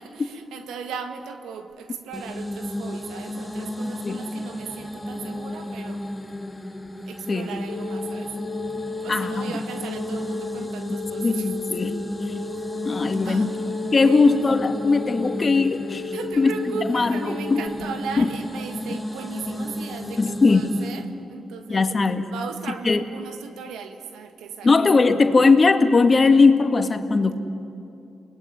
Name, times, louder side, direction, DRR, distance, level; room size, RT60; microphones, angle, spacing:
voice 1, 0.0-6.0 7.1-8.4 9.0-11.5 13.2-13.5 13.9-14.2 16.1-21.9 22.3-24.7, right 6 dB, 80° right, 7 dB, 1.7 m, -37 dB
sound 1, 2.1-21.0, left 1 dB, 10° left, 3.2 m, -33 dB
voice 2, 3.8-4.2 7.3-7.5 9.1-9.6 11.2-12.0 12.8-13.5 13.9-17.6 18.2-18.3 20.2-20.7 21.7-22.3 22.9-23.0 24.6-27.4, left 4 dB, 45° left, 6 dB, 2.2 m, -19 dB
sound 2, 7.7-17.7, left 4 dB, 70° left, 1.4 m, -34 dB
30.0 x 19.5 x 9.9 m, 2.7 s
hypercardioid pair, 40°, 0 cm